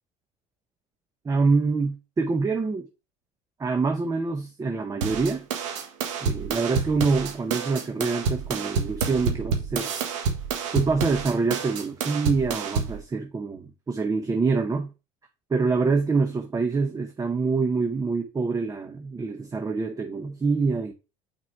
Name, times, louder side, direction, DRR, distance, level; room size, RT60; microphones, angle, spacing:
voice 1, 1.2-2.8 3.6-5.5 6.2-9.9 10.7-14.9 15.5-20.9, right 4 dB, 20° right, 0.9 m, -25 dB
sound 1, 5.0-13.0, right 5 dB, 90° right, 1.4 m, -29 dB
6.0 x 4.6 x 4.7 m
supercardioid pair, 90°, 16 cm